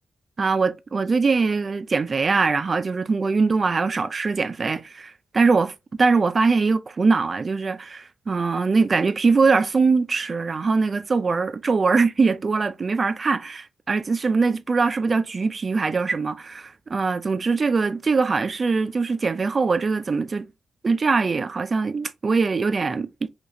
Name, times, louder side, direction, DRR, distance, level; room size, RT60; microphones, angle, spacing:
voice 1, 0.4-20.5 20.8-23.3, right 4 dB, 45° right, 0.4 m, -22 dB
3.4 x 2.8 x 2.6 m
supercardioid pair, 55°, 0 cm